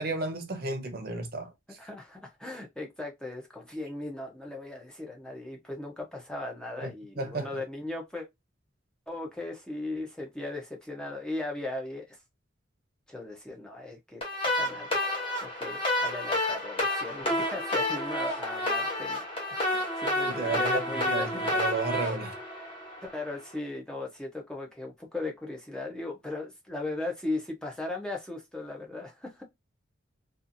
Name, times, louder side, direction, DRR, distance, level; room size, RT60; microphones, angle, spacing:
voice 1, 0.0-1.5 6.8-6.9 7.2-7.5 20.3-20.8 21.1-22.3, right 3 dB, 45° right, 0.6 m, -32 dB
voice 2, 1.8-8.3 9.1-12.2 13.1-21.3 23.0-29.4, left 2 dB, 5° left, 0.5 m, -38 dB
sound 1, 14.2-23.3, left 1 dB, 25° left, 0.8 m, -30 dB
2.6 x 2.4 x 2.5 m
head